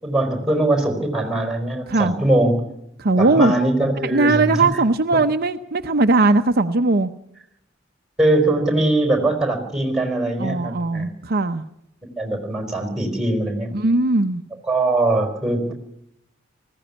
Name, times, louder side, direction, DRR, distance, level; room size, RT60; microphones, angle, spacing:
voice 1, 0.0-2.7 3.2-4.6 8.2-11.1 12.2-13.8 14.6-15.7, right 2 dB, 5° right, 5 dB, 4.4 m, -21 dB
voice 2, 3.0-3.5 4.0-7.1 10.4-11.6 13.7-14.4, right 3 dB, 50° right, 7 dB, 0.8 m, -19 dB
19.5 x 15.5 x 9.8 m, 0.80 s
head